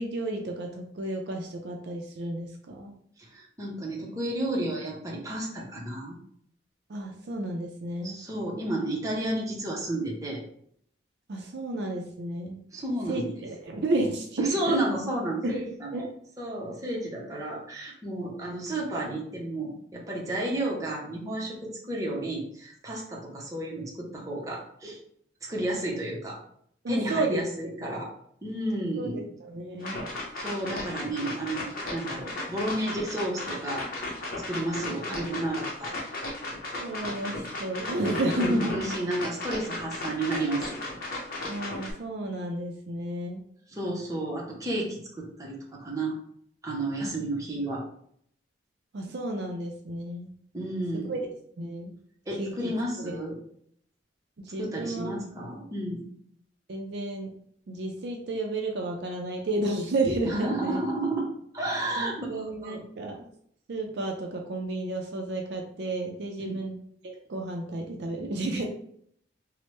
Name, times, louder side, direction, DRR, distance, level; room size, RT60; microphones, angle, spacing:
voice 1, 0.0-2.9 6.9-8.2 11.3-12.6 13.1-14.9 15.4-15.6 15.9-16.1 26.8-27.8 29.0-30.0 36.8-38.9 41.5-43.4 47.0-47.1 48.9-50.3 51.1-51.3 51.6-51.9 52.4-52.5 53.0-53.2 54.4-55.2 56.7-57.3 57.7-60.8 62.0-63.2 63.7-66.8 67.0-68.6, right 2 dB, 60° right, 2 dB, 0.4 m, -32 dB
voice 2, 3.2-6.2 8.0-10.4 12.7-13.5 14.4-16.1 16.4-25.0 25.4-26.4 26.9-28.1 28.4-29.2 30.4-33.8 34.5-35.9 38.4-40.8 43.7-46.2 46.6-47.8 50.5-51.2 52.3-53.4 54.6-56.0 60.3-61.3 61.5-62.8 66.4-66.6, right 1 dB, 15° right, -3 dB, 0.6 m, -32 dB
sound 1, 29.8-41.9, left 2 dB, 50° left, 0.8 m, -35 dB
3.1 x 2.0 x 3.0 m, 0.66 s
head